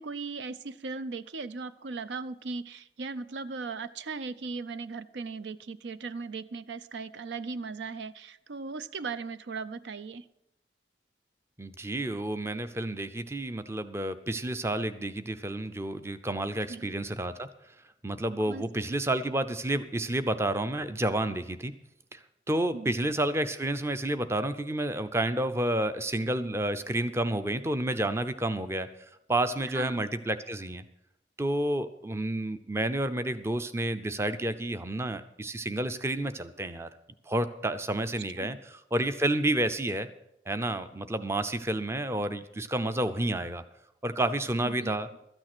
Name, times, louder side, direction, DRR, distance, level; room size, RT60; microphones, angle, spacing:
voice 1, 0.0-10.2 16.7-16.9 18.5-18.6 22.7-23.0 29.7-30.0 38.4-38.6 44.6-44.9, right 4 dB, 85° right, 14 dB, 0.5 m, -38 dB
voice 2, 11.6-17.5 18.0-21.7 22.1-22.2 22.5-28.9 29.3-30.8 31.4-36.9 37.3-40.1 40.5-43.6 44.0-45.1, right 1 dB, 15° right, 11 dB, 0.5 m, -30 dB
13.0 x 9.0 x 6.0 m, 0.82 s
head